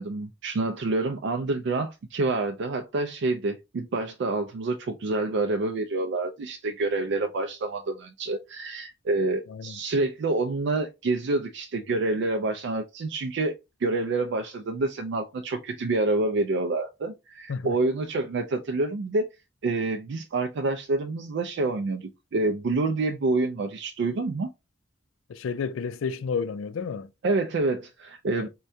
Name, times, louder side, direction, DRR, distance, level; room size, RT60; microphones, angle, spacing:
voice 1, 0.0-13.5 13.8-19.3 19.6-24.5 27.2-28.5, right 2 dB, 60° right, 0.4 m, -27 dB
voice 2, 9.5-9.8 17.5-17.7 25.3-27.1 28.3-28.5, left 5 dB, 80° left, 0.4 m, -31 dB
4.5 x 2.2 x 2.6 m
head